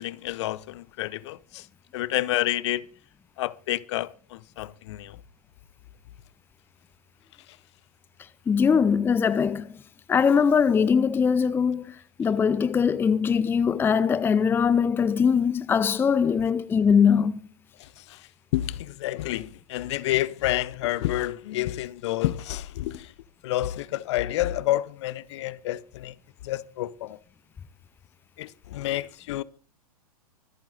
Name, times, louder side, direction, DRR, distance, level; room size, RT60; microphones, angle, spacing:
voice 1, 0.0-1.6 1.9-2.8 3.4-5.1 18.5-23.1 23.4-26.1 26.4-27.2 28.4-29.4, left 15 dB, 50° left, 0.8 m, -29 dB
voice 2, 8.5-9.8 10.1-17.4, left 6 dB, 10° left, 0.6 m, -21 dB
25.0 x 8.9 x 4.0 m
figure-of-eight pair, 110°, 19 cm